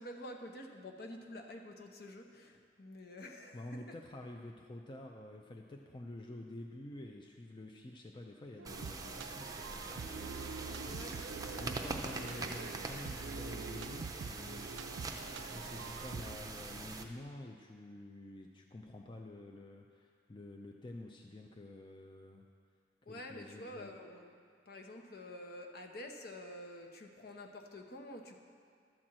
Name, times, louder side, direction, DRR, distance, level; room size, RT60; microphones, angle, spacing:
voice 1, 0.0-3.6 3.9-4.0 10.8-11.9 23.1-24.4 24.7-28.4, left 1 dB, 60° left, 3 dB, 0.9 m, -48 dB
voice 2, 3.5-14.7 15.2-22.5 23.0-23.9, left 1 dB, 25° left, 2 dB, 0.5 m, -49 dB
sound 1, 8.6-17.0, right 3 dB, 20° right, 0.6 m, -43 dB
sound 2, 8.6-16.4, right 5 dB, 85° right, 0.4 m, -46 dB
12.0 x 4.4 x 7.5 m, 2.3 s
head